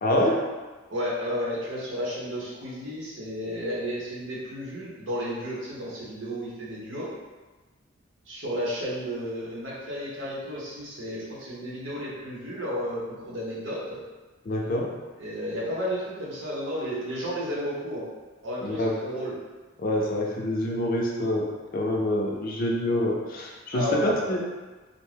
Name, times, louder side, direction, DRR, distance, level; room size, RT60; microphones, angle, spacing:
voice 1, 0.0-0.4 14.4-14.9 18.6-18.9 19.8-21.5 21.7-24.4, left 1 dB, 45° left, -2 dB, 0.4 m, -26 dB
voice 2, 0.9-7.1 8.3-14.0 15.2-18.1 18.4-19.3 23.7-24.4, equal, 75° right, -6 dB, 0.9 m, -32 dB
2.5 x 2.1 x 3.3 m, 1.2 s
head